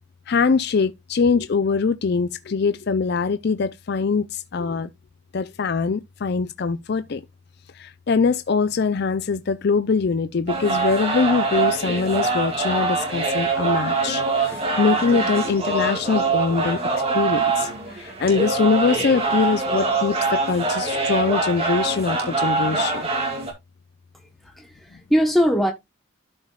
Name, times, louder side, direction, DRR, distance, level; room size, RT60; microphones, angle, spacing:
voice 1, 0.3-4.9 5.3-7.2 7.7-23.1, left 5 dB, 50° left, 0.4 m, -23 dB
sound 1, 10.5-23.5, right 3 dB, 30° right, 2.2 m, -24 dB
voice 2, 24.4-25.7, equal, ahead, 1.0 m, -21 dB
12.5 x 5.3 x 2.3 m
head